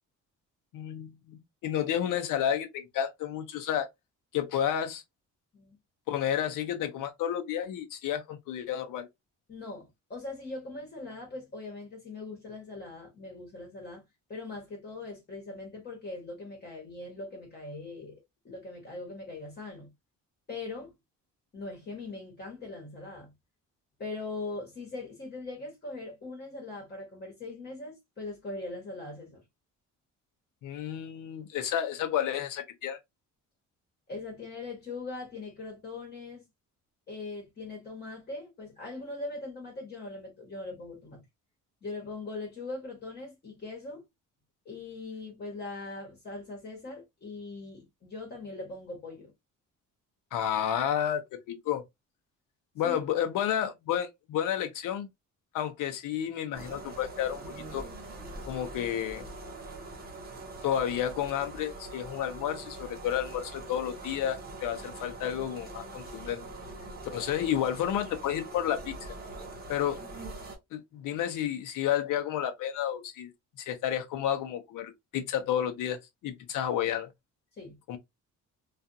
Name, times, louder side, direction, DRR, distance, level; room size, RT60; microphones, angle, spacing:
voice 1, 0.7-3.9 4.3-5.0 6.1-9.1 30.6-33.0 50.3-51.8 52.8-55.1 55.5-57.4 57.7-57.8 58.5-59.2 60.6-66.4 67.1-68.9 69.7-70.0 70.7-73.3 73.6-77.1 77.9-78.0, left 10 dB, 80° left, 0.7 m, -31 dB
voice 2, 9.5-14.0 14.3-18.2 18.4-19.9 20.5-20.9 21.5-23.3 24.0-29.4 34.1-36.5 37.1-41.2 41.8-44.0 44.6-49.3 52.8-53.0 77.6-77.8, left 3 dB, 30° left, 1.1 m, -41 dB
sound 1, 56.5-70.6, right 2 dB, 30° right, 0.8 m, -43 dB
2.4 x 2.4 x 2.6 m
cardioid pair, 150°, 31 cm